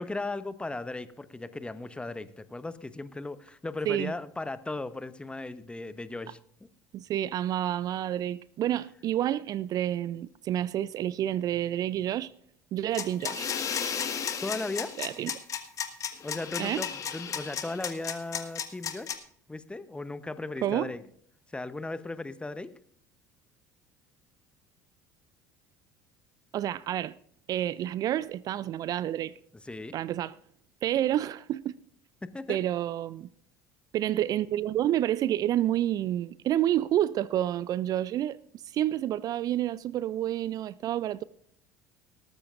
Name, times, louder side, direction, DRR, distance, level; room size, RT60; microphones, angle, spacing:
voice 1, 0.0-6.7 14.4-14.9 16.2-19.1 19.5-21.0 21.5-22.7 29.5-30.0 32.2-32.6, left 2 dB, 10° left, 0.9 m, -37 dB
voice 2, 6.9-12.3 12.7-13.5 15.0-15.4 16.6-16.8 20.6-20.9 26.5-27.1 27.5-29.3 29.9-30.3 30.8-31.8 32.5-33.3 33.9-38.4 38.7-41.2, right 12 dB, 45° right, 0.4 m, -29 dB
sound 1, 12.9-19.1, left 7 dB, 40° left, 1.7 m, -33 dB
18.5 x 13.5 x 2.5 m
figure-of-eight pair, 60°, 9 cm